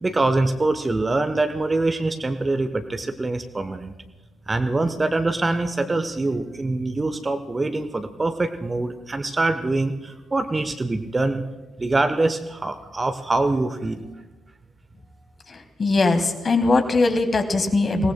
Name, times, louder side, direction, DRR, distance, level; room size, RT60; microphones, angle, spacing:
voice 1, 0.0-3.9 4.5-11.4 11.8-14.1, right 2 dB, 25° right, 9 dB, 0.9 m, -24 dB
voice 2, 15.5-18.1, left 3 dB, 35° left, 7 dB, 1.8 m, -21 dB
28.5 x 18.5 x 2.2 m, 1.2 s
figure-of-eight pair, 45°, 0 cm